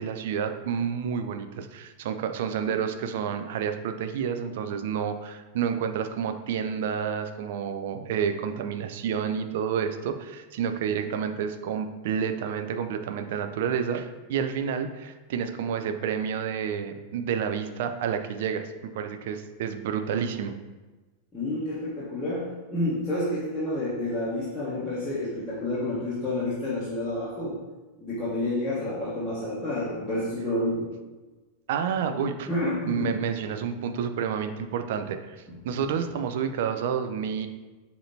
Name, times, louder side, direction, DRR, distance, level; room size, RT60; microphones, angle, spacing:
voice 1, 0.0-20.5 31.7-32.5 32.9-35.4 35.6-37.5, right 7 dB, 55° right, 8 dB, 0.4 m, -29 dB
voice 2, 21.3-27.6 28.0-30.9 32.5-33.1 33.5-33.6 35.5-35.8, left 1 dB, 10° left, -11 dB, 1.1 m, -29 dB
6.4 x 2.8 x 2.7 m, 1.2 s
figure-of-eight pair, 90°, 0 cm